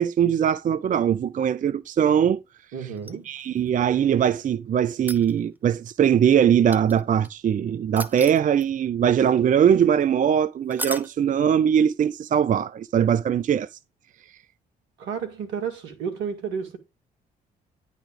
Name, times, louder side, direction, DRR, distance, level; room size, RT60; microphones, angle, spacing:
voice 1, 0.0-2.4 3.3-13.8, right 8 dB, 40° right, 0.5 m, -21 dB
voice 2, 2.7-3.3 15.0-16.8, right 7 dB, 75° right, 1.9 m, -31 dB
sound 1, 3.0-3.7 4.9-5.7 6.7-7.3 8.0-8.9 10.7-11.1 13.4-13.5, right 1 dB, 10° right, 1.0 m, -35 dB
10.0 x 4.1 x 5.1 m
hypercardioid pair, 50°, 20 cm